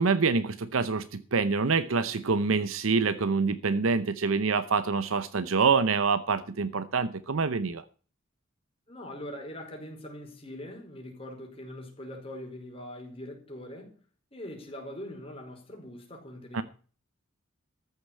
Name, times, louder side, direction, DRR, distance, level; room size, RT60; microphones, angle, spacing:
voice 1, 0.0-7.8 16.5-16.6, right 4 dB, 70° right, 0.7 m, -26 dB
voice 2, 8.9-14.0 14.3-16.6, left 1 dB, 30° left, 4.7 m, -42 dB
14.0 x 6.7 x 8.3 m
head